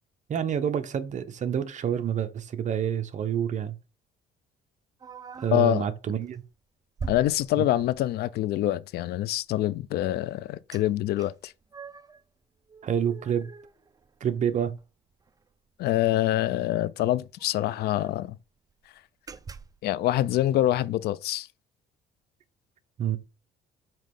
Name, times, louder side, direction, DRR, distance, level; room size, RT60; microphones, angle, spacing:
voice 1, 0.3-3.7 5.4-6.4 7.6-7.7 12.8-13.5 14.2-14.8 23.0-23.2, right 9 dB, 45° right, 0.9 m, -28 dB
sound 1, 5.0-5.7 6.2-6.4 7.0-8.1 10.7-10.8 11.2-12.2 12.7-14.5 14.8-14.9 15.2-15.4 16.5-16.6 16.8-16.9 17.4-18.3 18.7-18.9 19.3-19.9, right 5 dB, 20° right, 0.5 m, -43 dB
voice 2, 5.5-5.9 7.1-11.5 15.8-18.4 19.8-21.5, left 14 dB, 70° left, 0.5 m, -25 dB
7.6 x 3.1 x 5.3 m
cardioid pair, 110°, 17 cm